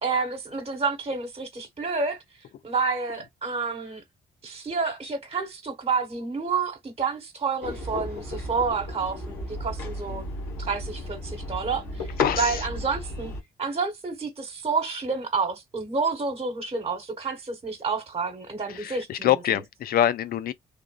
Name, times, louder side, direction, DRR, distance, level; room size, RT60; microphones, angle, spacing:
voice 1, 0.0-2.2 2.6-4.0 4.4-10.2 10.6-12.1 12.3-13.3 13.6-19.3, right 4 dB, 35° right, 1.2 m, -29 dB
sound 1, 7.6-13.4, left 2 dB, 85° left, 1.3 m, -33 dB
voice 2, 12.2-12.6 18.7-20.5, left 11 dB, 65° left, 0.5 m, -25 dB
3.3 x 2.4 x 2.4 m
hypercardioid pair, 50°, 17 cm